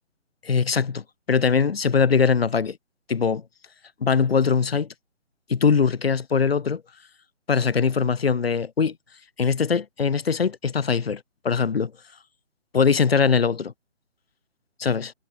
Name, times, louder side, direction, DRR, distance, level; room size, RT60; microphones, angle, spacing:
voice 1, 0.4-2.8 3.1-3.4 4.0-4.9 5.5-6.8 7.5-9.0 9.4-11.9 12.7-13.7 14.8-15.1, left 6 dB, 50° left, 2.1 m, -21 dB
hypercardioid pair, 165°, 38 cm